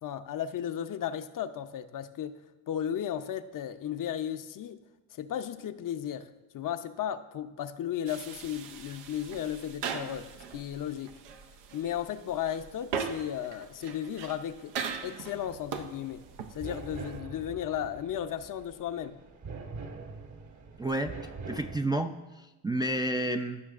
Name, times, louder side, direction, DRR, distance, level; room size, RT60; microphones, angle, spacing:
voice 1, 0.0-2.4 2.7-4.8 5.1-6.3 6.5-11.1 11.7-14.7 15.0-16.2 16.5-19.2, left 10 dB, 50° left, 10 dB, 0.6 m, -35 dB
sound 1, 8.1-17.2, right 6 dB, 90° right, 0.7 m, -40 dB
sound 2, 16.0-21.8, right 4 dB, 45° right, 1.1 m, -44 dB
voice 2, 20.8-21.2 21.5-23.6, right 1 dB, 10° right, 4 dB, 0.3 m, -30 dB
15.0 x 5.8 x 2.4 m, 1.1 s
supercardioid pair, 70°, 41 cm